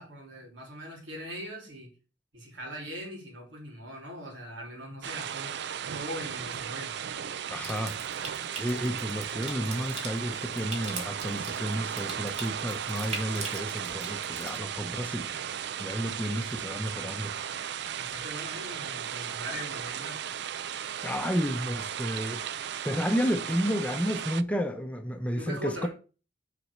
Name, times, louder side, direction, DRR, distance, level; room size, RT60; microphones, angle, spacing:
voice 1, 0.0-1.9 2.3-5.6 5.9-6.9 16.2-16.5 18.0-20.2 25.3-25.9, equal, 80° right, 3.3 m, -41 dB
sound 1, 5.0-24.4, right 9 dB, 65° right, 0.4 m, -36 dB
voice 2, 7.5-8.0 8.6-15.5 15.8-17.3 21.0-22.4 22.8-25.9, equal, 5° left, 0.7 m, -31 dB
Water tap faucet / Sink (filling or washing) / Trickle dribble, 7.6-14.6, right 3 dB, 35° right, 1.5 m, -42 dB
6.2 x 4.2 x 6.3 m
head